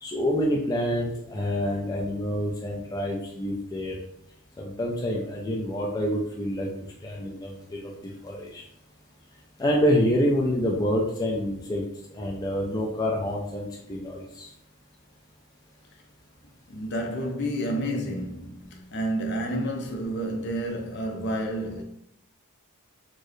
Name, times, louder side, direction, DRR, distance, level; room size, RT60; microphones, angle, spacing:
voice 1, 0.0-3.9 4.6-6.7 7.0-8.6 9.6-11.8 12.1-14.5, equal, 15° left, 0.4 m, -27 dB
voice 2, 16.7-21.8, right 1 dB, 50° left, 0.6 m, -30 dB
4.4 x 2.1 x 3.1 m
head